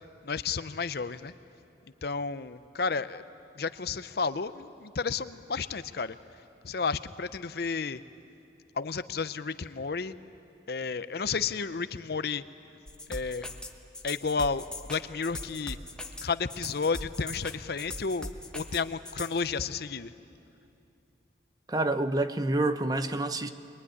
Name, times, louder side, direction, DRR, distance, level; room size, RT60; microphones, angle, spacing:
voice 1, 0.2-1.3 2.0-3.2 3.6-6.2 6.6-8.0 8.8-10.1 10.7-12.4 13.1-13.5 14.0-15.8 16.2-20.1, left 5 dB, 60° left, 13 dB, 0.6 m, -32 dB
sound 1, 12.9-19.4, left 2 dB, 5° left, 1.1 m, -40 dB
voice 2, 21.7-23.5, right 2 dB, 20° right, 10 dB, 0.7 m, -28 dB
23.5 x 22.5 x 9.7 m, 2.7 s
head